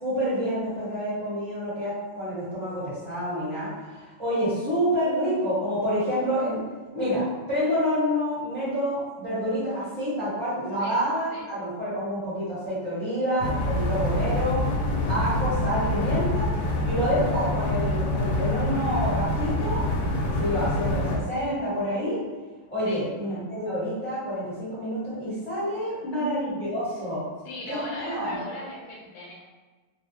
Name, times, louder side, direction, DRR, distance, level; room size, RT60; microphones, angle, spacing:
voice 1, 0.0-6.6 6.9-14.7 15.1-16.5 16.8-19.9 20.3-22.2 22.7-27.3 27.7-28.4, equal, ahead, -13 dB, 1.0 m, -28 dB
sound 1, 13.4-21.2, left 1 dB, 80° left, 1.3 m, -26 dB
voice 2, 25.9-26.2 27.4-29.3, left 2 dB, 65° left, -3 dB, 1.2 m, -38 dB
3.2 x 2.3 x 2.8 m, 1.3 s
omnidirectional pair, 2.1 m